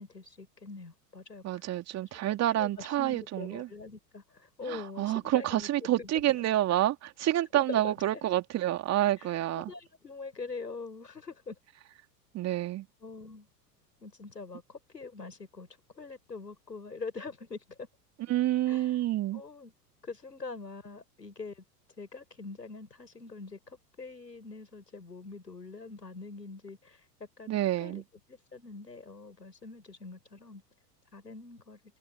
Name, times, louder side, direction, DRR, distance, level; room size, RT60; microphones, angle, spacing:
voice 1, 0.0-1.6 2.5-6.5 7.5-8.4 9.2-11.6 12.5-12.6 13.0-13.5 14.0-15.7 15.9-17.9 18.7-19.0 19.3-19.7 20.0-21.6 22.0-30.6 31.1-31.8, left 4 dB, 85° left, 7.9 m, -44 dB
voice 2, 1.4-3.7 4.7-9.7 12.3-12.9 18.3-19.4 27.5-28.0, right 14 dB, 30° right, 3.0 m, -28 dB
figure-of-eight pair, 90°, 49 cm